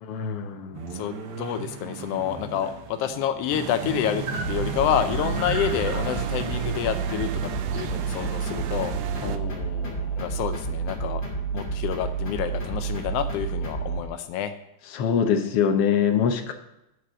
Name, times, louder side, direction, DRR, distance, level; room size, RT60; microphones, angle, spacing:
voice 1, 0.0-0.8 9.2-10.2 14.9-16.5, left 7 dB, 65° left, 6 dB, 1.5 m, -25 dB
sound 1, 0.7-9.7 12.0-13.0, right 4 dB, 60° right, 1.3 m, -38 dB
voice 2, 0.9-7.3 7.7-8.9 10.2-11.2 11.5-14.5, left 9 dB, 90° left, 8 dB, 1.3 m, -28 dB
sound 2, 3.5-9.4, right 9 dB, 80° right, 1.7 m, -34 dB
sound 3, 4.3-14.0, right 4 dB, 20° left, 1.5 m, -30 dB
9.4 x 4.8 x 7.3 m, 0.86 s
omnidirectional pair, 3.4 m